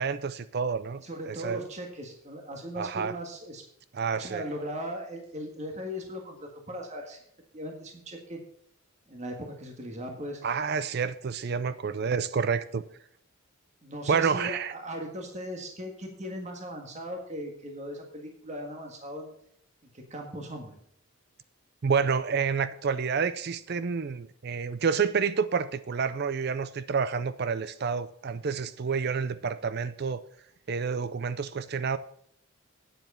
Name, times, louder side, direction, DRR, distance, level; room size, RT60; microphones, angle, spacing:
voice 1, 0.0-1.6 2.8-3.1 3.9-4.4 10.4-12.8 14.1-14.7 21.8-30.2 30.7-32.0, right 5 dB, 50° right, 0.4 m, -29 dB
voice 2, 1.0-3.6 4.0-7.2 7.5-8.4 9.1-10.4 13.8-19.3 19.9-20.8, equal, 35° right, 1.7 m, -38 dB
9.4 x 7.7 x 5.5 m
head